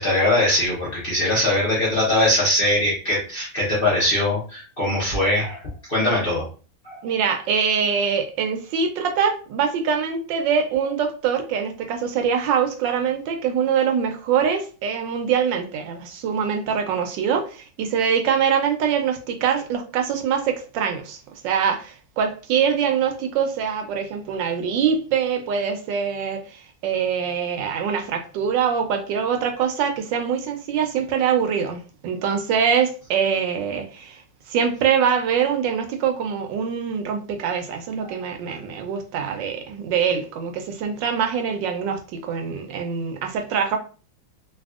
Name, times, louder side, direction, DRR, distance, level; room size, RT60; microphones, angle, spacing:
voice 1, 0.0-5.6 5.9-6.5 6.8-7.0 38.1-38.2, left 1 dB, 65° left, -7 dB, 0.5 m, -21 dB
voice 2, 7.0-34.2 34.5-43.8, right 7 dB, 75° right, 4 dB, 1.1 m, -24 dB
3.4 x 2.3 x 2.4 m, 0.37 s
omnidirectional pair, 2.2 m